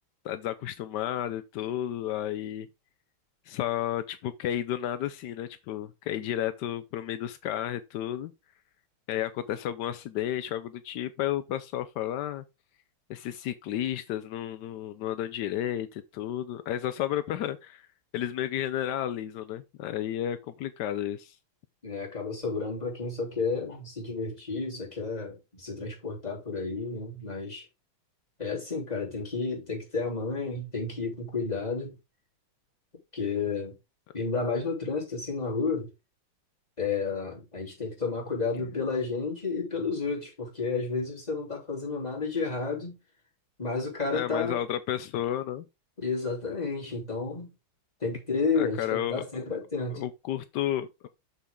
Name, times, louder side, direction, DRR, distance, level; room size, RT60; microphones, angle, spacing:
voice 1, 0.2-2.7 3.5-8.3 9.1-12.4 13.1-17.9 18.1-21.4 44.1-45.6 48.6-49.2 49.9-51.1, left 11 dB, 80° left, 1.0 m, -32 dB
voice 2, 21.8-27.6 28.4-31.9 33.1-33.7 34.1-35.9 36.8-43.0 43.6-44.6 46.0-47.5 48.0-50.0, left 4 dB, 15° left, 3.3 m, -31 dB
7.1 x 7.1 x 3.7 m
omnidirectional pair, 2.4 m